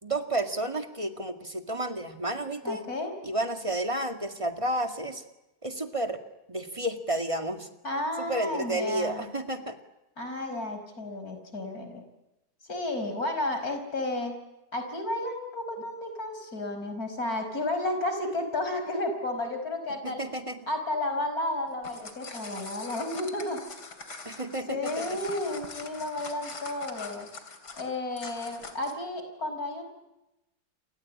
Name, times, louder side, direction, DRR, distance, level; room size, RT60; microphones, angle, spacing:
voice 1, 0.0-2.8 3.2-5.2 5.6-6.2 6.5-7.7 8.2-9.8 20.0-20.6 24.3-25.2, right 1 dB, 20° right, 6 dB, 2.2 m, -31 dB
voice 2, 2.6-3.1 7.8-9.3 10.2-12.1 12.6-14.3 14.7-20.2 20.7-23.6 24.7-27.3 27.8-29.9, left 2 dB, 65° left, 7 dB, 5.7 m, -32 dB
sound 1, 21.7-29.0, left 4 dB, 80° left, 3.7 m, -43 dB
28.5 x 24.0 x 8.7 m, 0.96 s
omnidirectional pair, 1.7 m